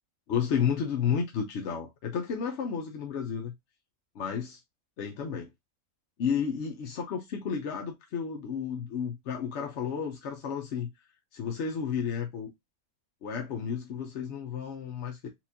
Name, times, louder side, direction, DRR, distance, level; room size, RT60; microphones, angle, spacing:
voice 1, 0.3-3.5 4.1-4.6 5.0-5.5 6.2-10.9 11.3-12.5 13.2-15.3, left 7 dB, 60° left, 0.8 m, -32 dB
4.3 x 2.4 x 2.6 m
omnidirectional pair, 1.5 m